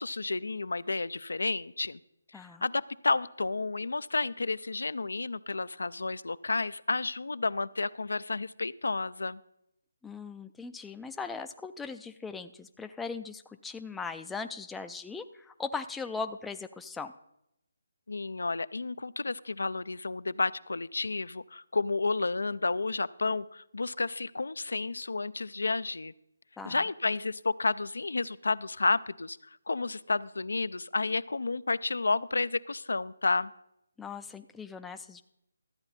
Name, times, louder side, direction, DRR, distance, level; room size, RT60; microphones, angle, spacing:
voice 1, 0.0-2.0 2.3-9.4 18.1-26.1 26.7-33.5, left 3 dB, 85° left, 17 dB, 0.3 m, -31 dB
voice 2, 2.3-2.6 10.0-17.1 26.6-26.8 34.0-35.2, left 4 dB, 5° left, 7 dB, 0.3 m, -39 dB
13.0 x 8.7 x 4.1 m, 0.81 s
hypercardioid pair, 160°, 0 cm